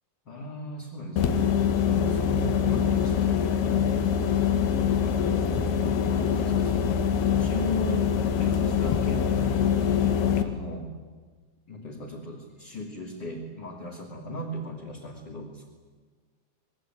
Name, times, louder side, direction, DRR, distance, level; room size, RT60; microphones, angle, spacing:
voice 1, 0.3-3.9 5.0-6.9 7.2-8.1 8.4-10.9 11.7-15.7, left 1 dB, 30° left, -3 dB, 3.4 m, -37 dB
sound 1, 1.2-10.4, left 7 dB, 85° left, 3.5 m, -24 dB
25.5 x 21.5 x 9.2 m, 1.5 s
omnidirectional pair, 4.4 m